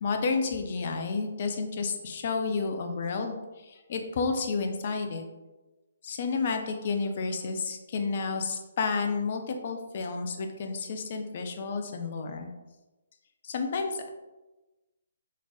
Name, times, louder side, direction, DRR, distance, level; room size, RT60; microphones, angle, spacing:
voice 1, 0.0-5.2 6.0-12.5 13.4-14.1, left 4 dB, 45° left, 5 dB, 0.4 m, -31 dB
3.8 x 3.2 x 2.2 m, 1.1 s
figure-of-eight pair, 135°, 0 cm